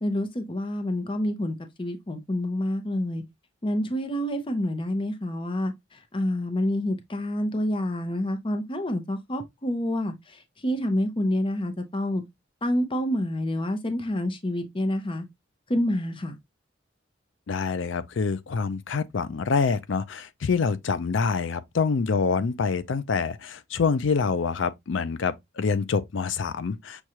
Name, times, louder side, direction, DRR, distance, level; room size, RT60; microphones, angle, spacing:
voice 1, 0.0-3.2 3.6-5.7 6.1-10.1 10.6-12.2 12.6-15.2 15.7-16.4, left 1 dB, 25° left, 0.6 m, -27 dB
voice 2, 17.5-27.0, left 5 dB, 75° left, 0.5 m, -26 dB
6.3 x 2.3 x 2.8 m
head